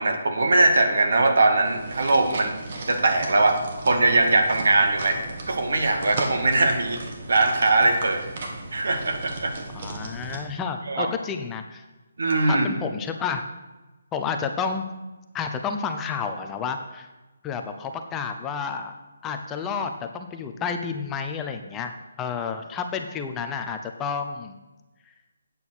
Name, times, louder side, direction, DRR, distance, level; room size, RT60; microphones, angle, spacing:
voice 1, 0.0-2.5 2.9-3.6 3.8-5.2 5.5-8.2 8.7-9.5 10.9-11.1 12.2-12.7, right 2 dB, 75° right, 4 dB, 1.9 m, -21 dB
sound 1, 1.6-10.4, right 2 dB, 50° right, 2.2 m, -36 dB
voice 2, 9.7-11.8 12.5-13.4 14.1-14.9 15.3-17.1 17.4-18.9 19.2-24.6, left 6 dB, 15° left, 5 dB, 0.7 m, -30 dB
9.0 x 7.0 x 6.3 m, 1.1 s
figure-of-eight pair, 155°, 0 cm